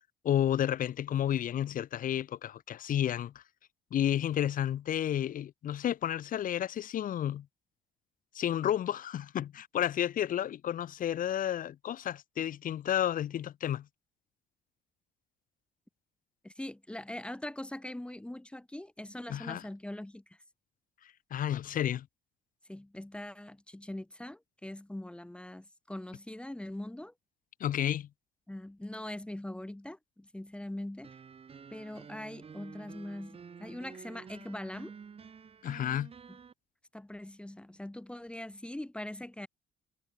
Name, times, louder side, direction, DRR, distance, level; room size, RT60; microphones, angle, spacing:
voice 1, 0.2-3.3 3.9-7.5 8.3-13.9 19.3-19.6 21.3-22.1 27.6-28.1 35.6-36.1, left 11 dB, 55° left, 1.4 m, -31 dB
voice 2, 16.4-20.4 22.7-27.1 28.5-31.1 31.7-35.0 36.3-36.4 36.9-39.5, left 1 dB, 5° left, 1.4 m, -42 dB
sound 1, 31.0-36.5, right 6 dB, 35° right, 2.8 m, -50 dB
cardioid pair, 105°, 17 cm